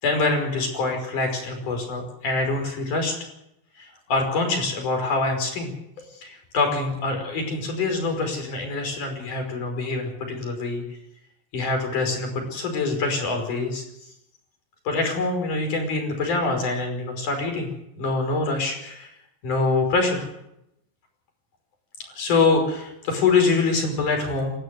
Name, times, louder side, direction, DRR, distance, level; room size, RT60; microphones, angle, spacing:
voice 1, 0.0-3.1 3.8-5.7 6.2-10.8 11.5-13.8 14.8-17.7 18.0-19.1 19.4-20.3 22.1-24.5, left 3 dB, 50° left, 4 dB, 6.6 m, -25 dB
29.0 x 12.5 x 8.2 m, 0.83 s
omnidirectional pair, 4.6 m